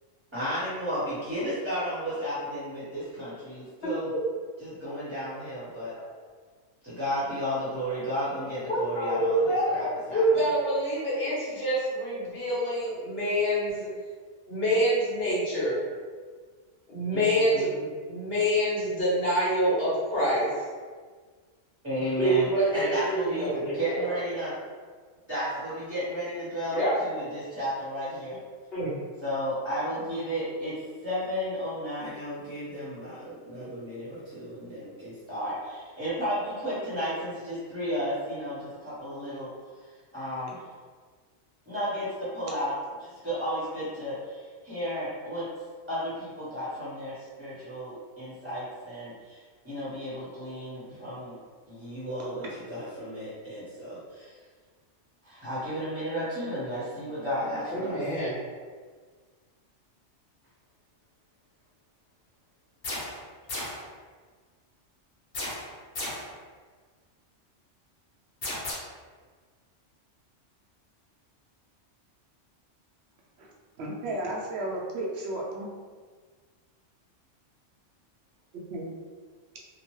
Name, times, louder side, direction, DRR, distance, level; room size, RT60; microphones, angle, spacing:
voice 1, 0.3-4.1 4.6-5.9 6.8-10.2 17.1-17.7 21.8-24.5 25.3-28.4 29.2-30.7 31.0-39.5 40.1-40.6 41.7-42.7 43.0-45.5 45.9-49.4 49.6-51.4 51.7-54.4 55.2-58.0, equal, 15° right, -11 dB, 0.7 m, -33 dB
voice 2, 8.7-13.9 14.5-15.8 16.9-20.5 22.2-24.1 26.7-26.9 28.7-28.9 57.7-58.3, equal, 55° left, -8 dB, 1.2 m, -26 dB
sound 1, 62.8-63.2 63.5-63.9 65.3-66.3 68.4-68.7, left 1 dB, 70° left, 1.2 m, -34 dB
voice 3, 73.8-75.7 78.7-78.9, right 1 dB, 65° right, -3 dB, 0.7 m, -33 dB
2.8 x 2.0 x 3.0 m, 1.5 s
omnidirectional pair, 1.3 m